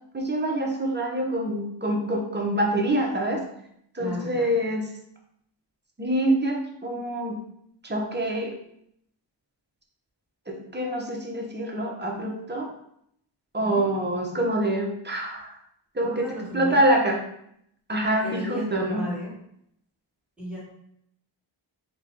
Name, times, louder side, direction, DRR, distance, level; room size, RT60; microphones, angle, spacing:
voice 1, 0.1-3.4 3.9-4.8 6.0-7.4 7.8-8.6 10.5-12.7 13.5-15.5 15.9-16.3 16.5-17.2 17.9-19.0, right 1 dB, 25° right, 0 dB, 0.9 m, -25 dB
voice 2, 4.0-4.6 13.6-13.9 16.0-16.8 18.2-19.4 20.4-20.6, equal, ahead, -5 dB, 1.6 m, -35 dB
3.9 x 2.4 x 4.5 m, 0.73 s
wide cardioid pair, 80°, 46 cm